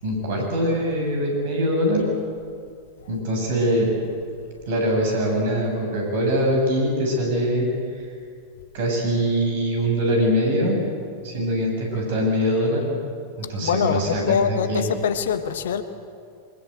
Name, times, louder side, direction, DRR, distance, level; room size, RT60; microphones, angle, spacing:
voice 1, 0.0-2.1 3.1-3.9 4.7-7.7 7.9-8.1 8.7-10.8 11.2-13.0 13.4-14.9, equal, 55° right, 1 dB, 7.5 m, -23 dB
voice 2, 13.6-15.8, left 7 dB, 60° left, 11 dB, 1.3 m, -23 dB
23.5 x 21.0 x 8.1 m, 2.3 s
figure-of-eight pair, 90°, 0 cm